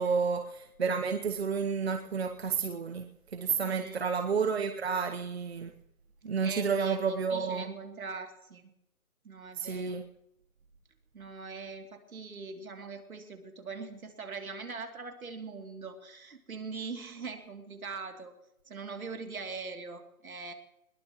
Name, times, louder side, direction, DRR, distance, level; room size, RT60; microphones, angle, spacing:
voice 1, 0.0-5.7 6.2-7.7 9.5-10.0, right 5 dB, 45° right, 7 dB, 1.0 m, -31 dB
voice 2, 3.6-4.0 6.4-8.6 9.2-10.0 11.1-18.3 18.7-20.5, right 4 dB, 70° right, 4 dB, 3.0 m, -42 dB
21.0 x 19.0 x 3.1 m, 0.84 s
hypercardioid pair, 165°, 44 cm